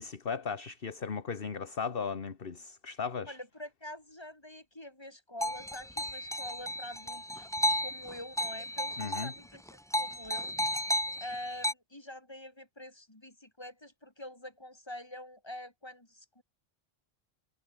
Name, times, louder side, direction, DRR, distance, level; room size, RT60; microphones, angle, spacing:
voice 1, 0.0-3.4 9.0-9.3, left 5 dB, 65° left, 1.7 m, -36 dB
voice 2, 3.3-7.5 7.8-10.8 11.2-16.4, left 1 dB, 25° left, 3.0 m, -46 dB
sound 1, 5.4-9.4 9.7-11.7, equal, 5° left, 1.3 m, -33 dB
omnidirectional pair, 1.0 m